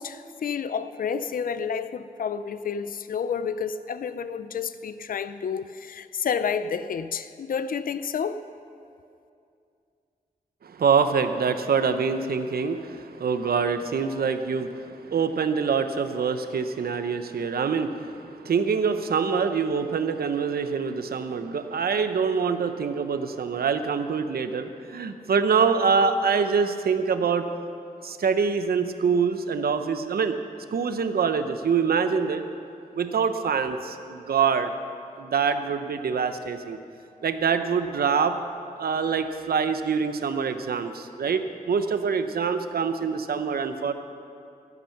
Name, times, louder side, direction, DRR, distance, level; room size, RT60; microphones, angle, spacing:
voice 1, 0.0-8.4, left 6 dB, 65° left, 12 dB, 0.5 m, -30 dB
voice 2, 10.6-27.5 28.0-30.4 30.7-32.4 32.9-34.7 35.2-36.8 37.2-38.4 38.8-43.9, right 6 dB, 80° right, 9 dB, 0.9 m, -25 dB
15.5 x 12.0 x 5.9 m, 2.5 s
wide cardioid pair, 110°, 16 cm